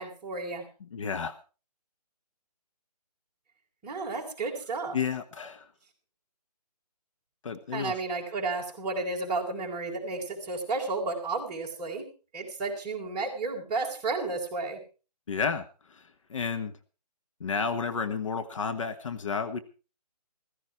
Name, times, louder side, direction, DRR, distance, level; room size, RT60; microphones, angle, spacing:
voice 1, 0.0-0.7 3.8-5.0 7.7-12.0 12.3-14.8, right 3 dB, 15° right, -3 dB, 3.9 m, -32 dB
voice 2, 0.8-1.3 4.9-5.6 7.4-7.9 15.3-15.6 16.3-16.7 17.4-19.6, left 5 dB, 50° left, 9 dB, 1.3 m, -31 dB
15.5 x 15.0 x 4.6 m, 0.35 s
hypercardioid pair, 160°, 20 cm